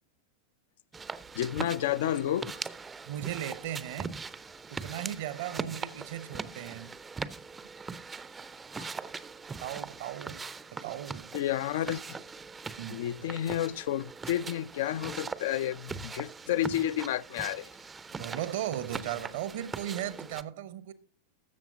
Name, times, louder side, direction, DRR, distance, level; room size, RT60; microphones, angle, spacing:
sound 1, 0.9-20.4, right 4 dB, 15° right, 0.5 m, -41 dB
voice 1, 1.4-2.6 8.8-8.9 11.3-12.2 12.9-17.7, left 12 dB, 55° left, 0.4 m, -31 dB
voice 2, 3.1-4.2 4.7-6.9 9.6-10.4 10.7-11.3 12.8-13.3 18.1-20.9, right 12 dB, 55° right, 0.8 m, -37 dB
13.0 x 7.3 x 3.9 m
figure-of-eight pair, 90°, 0 cm